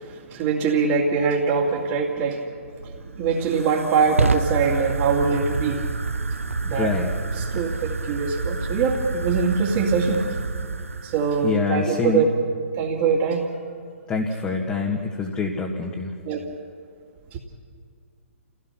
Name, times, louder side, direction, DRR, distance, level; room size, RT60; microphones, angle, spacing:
voice 1, 0.0-2.4 2.8-5.9 6.7-6.9 7.3-10.3 11.0-12.2 12.8-13.5 16.2-16.4 17.3-17.4, right 5 dB, 40° right, -6 dB, 2.6 m, -23 dB
Fire, 2.6-11.6, right 3 dB, 85° right, 0.8 m, -28 dB
voice 2, 6.6-7.1 11.4-12.2 14.1-16.1, left 4 dB, 20° left, -1 dB, 1.8 m, -25 dB
29.0 x 17.0 x 5.9 m, 2.1 s
figure-of-eight pair, 125°, 7 cm